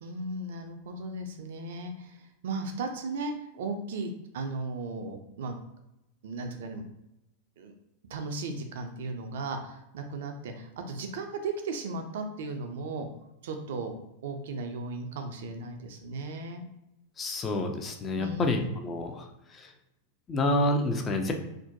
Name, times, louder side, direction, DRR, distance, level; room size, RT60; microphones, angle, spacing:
voice 1, 0.0-2.2 2.4-5.6 6.2-6.8 7.6-7.7 8.1-13.1 13.4-14.0 14.2-16.6 18.2-18.6, right 3 dB, 55° right, 4 dB, 0.4 m, -36 dB
voice 2, 17.2-19.2 20.3-21.3, left 1 dB, 20° left, 4 dB, 0.4 m, -28 dB
2.5 x 2.1 x 2.6 m, 0.89 s
figure-of-eight pair, 90°, 0 cm